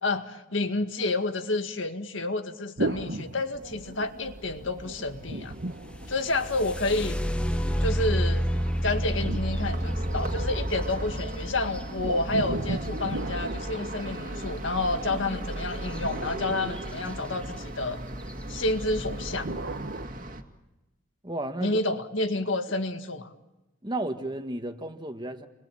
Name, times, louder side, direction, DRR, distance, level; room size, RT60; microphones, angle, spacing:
voice 1, 0.0-5.5 6.1-7.2 7.8-8.5 8.8-18.0 18.5-19.5 21.6-23.3, left 2 dB, 70° left, 2.0 m, -29 dB
sound 1, 2.8-4.2 5.2-6.8 8.5-10.5 12.0-14.6 15.7-17.6 19.1-20.1, right 2 dB, 60° right, 1.2 m, -36 dB
sound 2, 3.5-20.4, right 1 dB, 45° right, 2.2 m, -37 dB
sound 3, 5.9-13.8 15.8-16.0 16.4-17.0 17.6-17.7 18.2-18.5, equal, 5° left, 1.1 m, -30 dB
voice 2, 21.2-21.8 23.8-25.5, right 1 dB, 20° right, 1.6 m, -33 dB
30.0 x 23.0 x 8.7 m
head